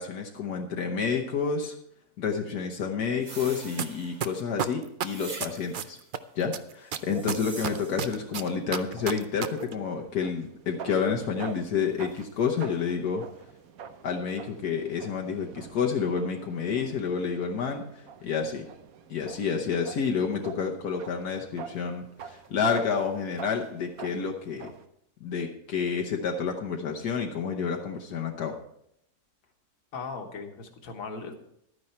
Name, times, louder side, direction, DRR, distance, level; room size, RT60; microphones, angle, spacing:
voice 1, 0.0-1.8 2.2-6.0 6.3-13.3 14.0-18.7 19.1-24.7 25.2-28.6, left 6 dB, 80° left, 1 dB, 1.5 m, -29 dB
sound 1, 3.2-4.4 5.1-5.9 6.9-8.2, right 4 dB, 35° right, 0.9 m, -44 dB
sound 2, 3.8-3.9 4.2-6.2 6.5-9.5 9.7-9.8, right 8 dB, 85° right, 0.4 m, -30 dB
sound 3, 6.9-24.9, right 6 dB, 65° right, 1.2 m, -47 dB
voice 2, 29.9-31.4, left 4 dB, 60° left, 4 dB, 1.7 m, -38 dB
12.0 x 9.7 x 4.4 m, 0.74 s
omnidirectional pair, 1.7 m